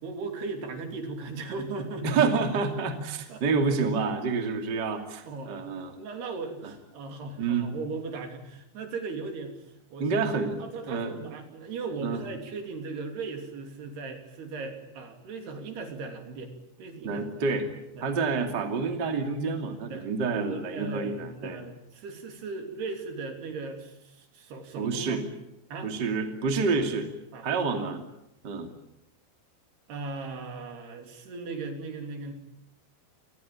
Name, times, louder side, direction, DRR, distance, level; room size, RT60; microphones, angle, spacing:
voice 1, 0.0-2.2 3.3-3.4 5.2-5.5 5.9-9.6 9.9-16.5 16.8-17.4 18.0-18.1 19.9-25.2 25.7-25.9 26.7-26.8 27.3-27.8 29.9-32.3, right 4 dB, 70° right, 5 dB, 4.9 m, -38 dB
voice 2, 2.0-5.9 7.4-7.7 10.0-11.2 12.0-12.2 17.0-17.7 18.0-21.6 24.8-25.2 25.8-27.1 27.4-28.0 28.4-28.7, right 4 dB, 30° right, 5 dB, 2.7 m, -28 dB
27.5 x 20.0 x 8.7 m, 0.85 s
omnidirectional pair, 5.0 m